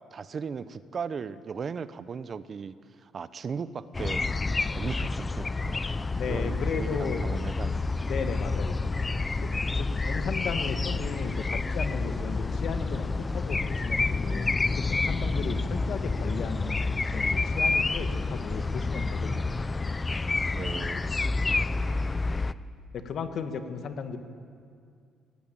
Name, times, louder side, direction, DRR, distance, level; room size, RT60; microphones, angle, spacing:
voice 1, 0.1-4.3 4.7-8.0 20.5-21.4, right 6 dB, 45° right, 15 dB, 0.8 m, -37 dB
sound 1, 3.9-22.5, left 3 dB, 25° left, 0.6 m, -29 dB
voice 2, 6.2-7.2 8.0-8.8 9.4-14.5 14.8-19.6 22.9-24.2, left 6 dB, 60° left, 7 dB, 1.9 m, -35 dB
18.5 x 17.5 x 8.8 m, 2.3 s
cardioid pair, 85°, 0 cm